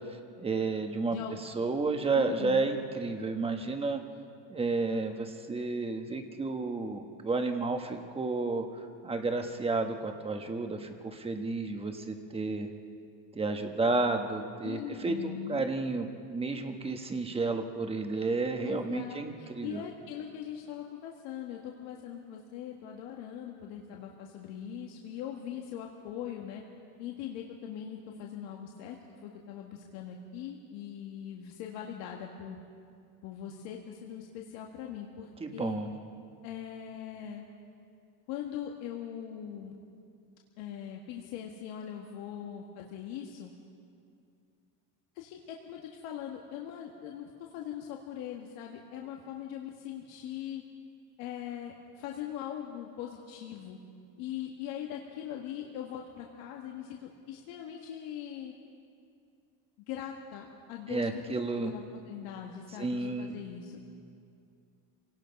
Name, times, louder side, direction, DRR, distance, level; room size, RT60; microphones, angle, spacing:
voice 1, 0.4-1.2 1.4-4.0 4.5-12.7 13.3-19.8 35.4-35.9 60.9-61.7 62.8-63.4, right 3 dB, 15° right, 5 dB, 1.1 m, -31 dB
voice 2, 1.1-1.4 2.1-2.7 14.6-15.7 18.6-26.6 27.0-32.6 33.2-35.8 36.4-37.4 38.3-39.8 40.6-43.5 45.2-50.6 51.2-53.8 54.2-58.5 59.9-61.4 61.6-63.9, left 9 dB, 85° left, 0 dB, 1.8 m, -41 dB
28.0 x 18.0 x 5.3 m, 2.4 s
cardioid pair, 165°, 44 cm